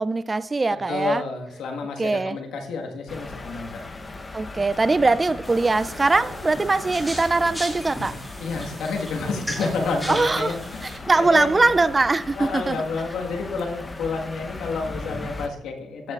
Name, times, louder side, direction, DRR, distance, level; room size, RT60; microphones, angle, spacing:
voice 1, 0.0-1.2 2.0-2.4 4.3-8.2 10.1-10.6 11.1-12.8, right 3 dB, 25° right, 0.3 m, -21 dB
voice 2, 0.9-3.8 8.4-11.7 12.4-16.1, left 4 dB, 80° left, 1.5 m, -29 dB
sound 1, 3.1-15.5, left 3 dB, 25° left, 0.8 m, -38 dB
sound 2, 5.4-11.0, equal, ahead, 2.6 m, -36 dB
13.5 x 7.4 x 2.4 m
cardioid pair, 90°, 0 cm